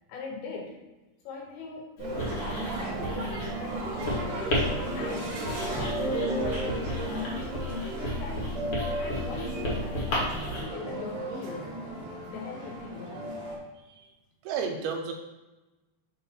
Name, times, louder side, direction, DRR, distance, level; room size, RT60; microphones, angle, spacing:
voice 1, 0.1-0.8 1.2-4.5 4.9-8.6 9.0-11.7 12.1-13.3, left 4 dB, 75° left, 0 dB, 2.8 m, -41 dB
Writing, 2.0-10.6, left 1 dB, 50° left, 1.7 m, -33 dB
sound 1, 2.0-13.6, right 1 dB, 55° right, 1.6 m, -34 dB
voice 2, 13.8-14.1 14.4-15.1, right 6 dB, 80° right, 3 dB, 2.5 m, -33 dB
5.8 x 4.0 x 4.3 m, 1.1 s
omnidirectional pair, 4.7 m